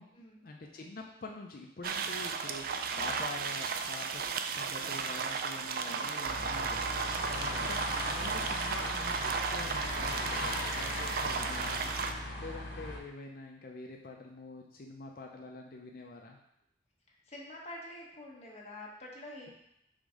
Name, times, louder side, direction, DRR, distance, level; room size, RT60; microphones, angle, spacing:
voice 1, 0.4-4.3 4.5-12.0 12.4-16.4, left 2 dB, 55° left, 1 dB, 0.5 m, -46 dB
sound 1, 1.8-12.1, right 5 dB, 55° right, 0.4 m, -34 dB
voice 2, 5.9-6.7 7.4-7.7 17.3-19.5, left 1 dB, 35° left, -3 dB, 1.4 m, -48 dB
sound 2, 6.2-13.0, left 1 dB, 75° left, 1.2 m, -38 dB
5.1 x 3.6 x 5.2 m, 0.78 s
head